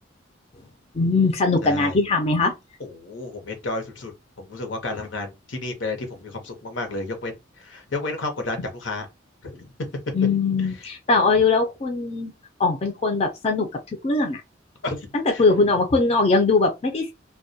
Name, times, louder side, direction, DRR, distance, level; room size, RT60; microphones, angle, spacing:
voice 1, 0.9-2.5 10.1-12.3 12.6-13.7 14.0-14.4 15.1-17.1, left 3 dB, 35° left, 0.4 m, -21 dB
voice 2, 1.6-2.0 2.8-4.1 4.4-7.3 7.6-9.1 9.4-9.7 14.8-15.0 15.3-15.4, left 2 dB, 85° left, 0.8 m, -31 dB
2.2 x 2.1 x 2.6 m
head